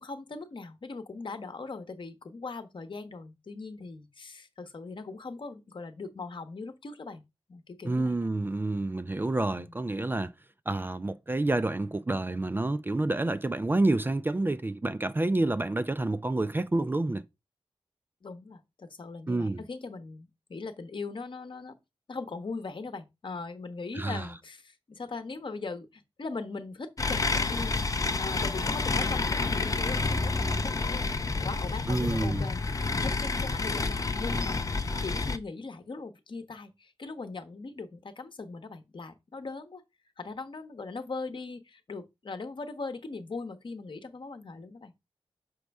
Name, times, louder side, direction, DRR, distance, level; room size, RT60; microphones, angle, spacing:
voice 1, 0.0-7.2 7.5-8.2 9.5-9.7 18.2-21.8 22.1-27.8 28.2-31.0 31.3-32.6 32.9-34.7 35.0-39.8 40.2-44.9, left 3 dB, 50° left, 0.9 m, -40 dB
voice 2, 7.8-10.3 10.7-17.2 19.3-19.6 23.9-24.3 31.9-32.5, right 2 dB, 20° right, 0.3 m, -28 dB
sound 1, 27.0-35.4, left 3 dB, 35° left, 0.5 m, -29 dB
6.1 x 5.2 x 3.4 m
wide cardioid pair, 110°, 10 cm